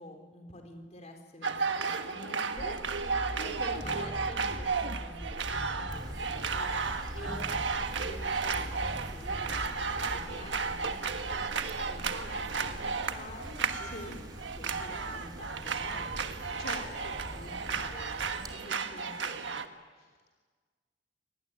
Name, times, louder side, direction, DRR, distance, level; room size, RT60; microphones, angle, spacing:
voice 1, 0.0-2.7 3.1-10.0 10.3-14.2 14.5-19.6, left 1 dB, 40° left, 3 dB, 4.1 m, -48 dB
sound 1, 1.4-19.7, right 5 dB, 80° right, 1.4 m, -34 dB
sound 2, 2.6-13.4, equal, ahead, 1.2 m, -43 dB
voice 2, 3.0-3.6 13.8-14.2 16.6-17.2 20.0-20.3, left 2 dB, 55° left, 0 dB, 3.2 m, -44 dB
sound 3, 5.9-18.5, equal, 25° right, 2.7 m, -46 dB
25.5 x 19.5 x 10.0 m, 1.5 s
head